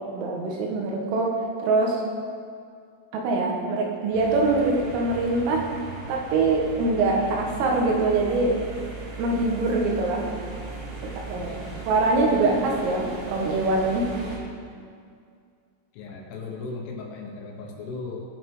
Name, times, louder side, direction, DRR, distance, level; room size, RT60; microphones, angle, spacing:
voice 1, 0.0-2.0 3.1-5.7 6.1-8.6 9.2-10.3 11.0-11.6 11.9-14.1, right 3 dB, 80° right, 0 dB, 3.9 m, -24 dB
sound 1, 4.1-14.4, right 3 dB, 60° right, 4.4 m, -38 dB
voice 2, 11.4-11.9 15.9-18.2, left 3 dB, 75° left, 0 dB, 3.4 m, -37 dB
17.0 x 6.1 x 5.4 m, 2.2 s
omnidirectional pair, 6.0 m